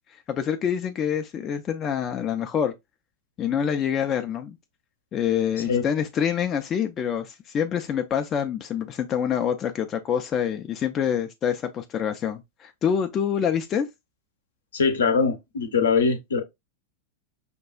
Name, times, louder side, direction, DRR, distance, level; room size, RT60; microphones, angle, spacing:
voice 1, 0.1-2.7 3.4-4.6 5.1-13.9, left 8 dB, 30° left, 0.4 m, -26 dB
voice 2, 14.7-16.4, left 5 dB, 65° left, 0.7 m, -22 dB
5.2 x 2.3 x 2.2 m
figure-of-eight pair, 90°, 0 cm